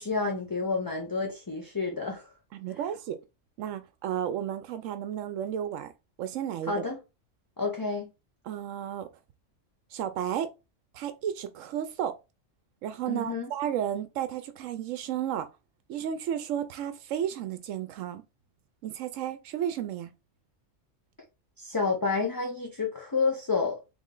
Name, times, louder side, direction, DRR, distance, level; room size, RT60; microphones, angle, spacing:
voice 1, 0.0-2.3 6.7-7.0 7.6-8.1 13.1-13.5 21.6-23.8, left 4 dB, 20° left, 0.6 m, -29 dB
voice 2, 2.5-3.2 3.6-5.9 6.2-6.8 8.4-9.1 9.9-10.5 10.9-12.2 12.8-15.5 15.9-18.2 18.8-20.1, right 10 dB, 85° right, 0.9 m, -33 dB
3.5 x 3.1 x 3.7 m
omnidirectional pair, 1.3 m